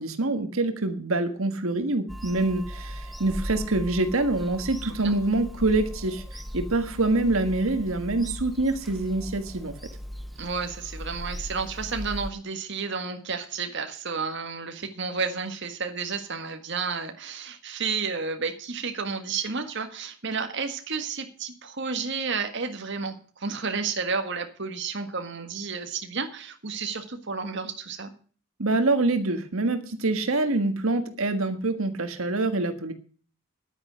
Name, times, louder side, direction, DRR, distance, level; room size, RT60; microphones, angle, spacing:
voice 1, 0.0-9.7 28.6-32.9, right 2 dB, 90° right, 7 dB, 1.6 m, -25 dB
Bird vocalization bird call bird song / Telephone, 2.1-12.3, equal, ahead, 0.9 m, -38 dB
voice 2, 10.4-28.1, right 5 dB, 60° right, 6 dB, 1.7 m, -31 dB
11.0 x 9.8 x 6.2 m, 0.42 s
head